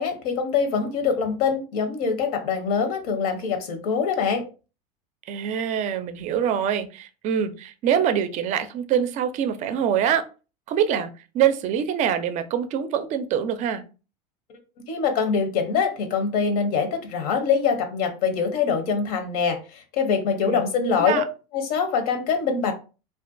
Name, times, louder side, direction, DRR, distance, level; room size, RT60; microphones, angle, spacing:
voice 1, 0.0-4.4 14.5-14.6 14.9-21.2 21.5-22.7, left 6 dB, 80° left, 6 dB, 0.7 m, -24 dB
voice 2, 5.3-10.2 10.7-11.1 11.3-13.8 20.4-20.6 21.0-21.2, right 9 dB, 40° right, 10 dB, 0.4 m, -24 dB
2.5 x 2.2 x 2.5 m, 0.33 s
supercardioid pair, 120°, 19 cm